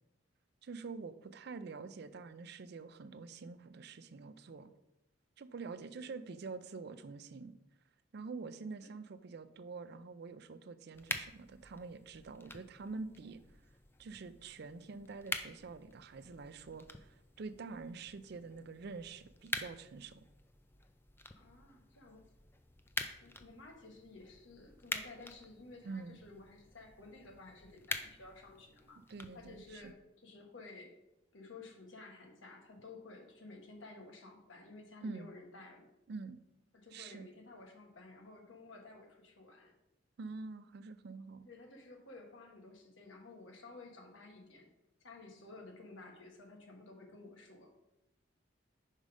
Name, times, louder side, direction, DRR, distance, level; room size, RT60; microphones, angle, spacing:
voice 1, 0.6-4.7 5.4-7.6 8.1-13.4 14.0-20.3 25.8-26.2 29.1-29.9 35.0-35.3 36.1-36.4 36.9-37.3 40.2-41.5, right 4 dB, 55° right, 12 dB, 0.4 m, -46 dB
sound 1, 10.9-29.9, left 2 dB, 10° left, 0.3 m, -46 dB
voice 2, 21.3-22.3 23.2-29.0 29.3-30.0 30.2-30.9 31.3-35.9 36.7-39.7 41.4-44.7 45.0-47.7, left 3 dB, 80° left, 2 dB, 1.3 m, -53 dB
5.4 x 5.1 x 4.9 m, 0.90 s
head